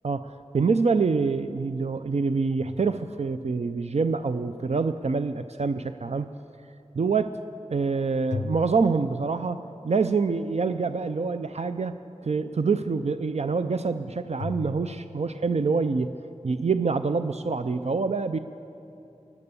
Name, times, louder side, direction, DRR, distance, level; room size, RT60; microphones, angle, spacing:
voice 1, 0.0-6.3 6.9-7.4 7.7-11.9 12.2-16.1 16.4-18.4, right 4 dB, 65° right, 10 dB, 0.4 m, -26 dB
sound 1, 2.6-3.7 8.3-9.9 14.4-15.5, left 4 dB, 80° left, 0.4 m, -38 dB
17.5 x 11.0 x 6.9 m, 2.8 s
wide cardioid pair, 55°, 12 cm